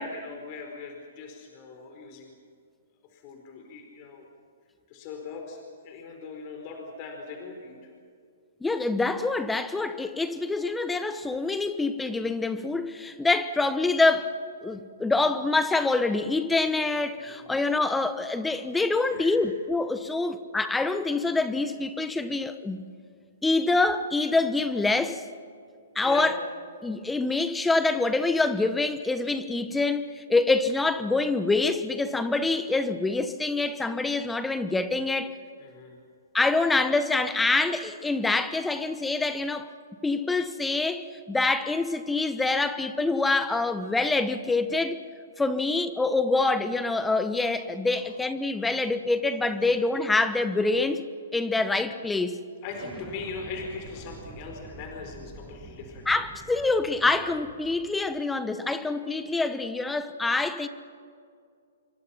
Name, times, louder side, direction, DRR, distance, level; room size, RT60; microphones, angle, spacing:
voice 1, 0.0-2.3 3.1-4.3 4.9-7.9 17.3-17.5 19.0-19.4 26.0-26.3 35.6-36.0 47.9-48.1 49.6-49.7 52.6-56.1, left 4 dB, 40° left, 4.4 m, -40 dB
voice 2, 8.6-14.3 14.6-22.8 23.4-25.2 25.9-26.4 26.8-35.4 36.3-39.7 40.0-45.0 45.4-51.0 51.3-52.4 56.1-60.7, left 3 dB, 10° left, 1.2 m, -26 dB
Explosion, 52.7-58.2, right 3 dB, 10° right, 1.9 m, -47 dB
27.5 x 24.0 x 5.8 m
hypercardioid pair, 130°, 0 cm